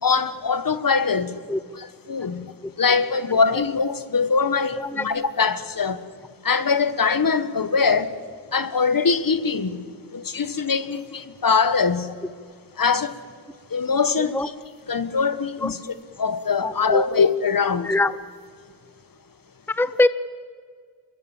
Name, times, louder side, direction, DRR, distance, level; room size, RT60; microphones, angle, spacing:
voice 1, 0.0-1.4 1.7-2.5 2.8-6.0 6.4-8.2 8.5-9.8 10.1-12.1 12.8-13.2 13.7-14.5 14.9-15.8 16.2-17.9, left 5 dB, 50° left, 1.5 m, -22 dB
voice 2, 16.6-17.0 17.8-18.1 19.7-20.1, left 2 dB, 5° left, 0.8 m, -22 dB
25.0 x 21.5 x 7.4 m
supercardioid pair, 40°, 44 cm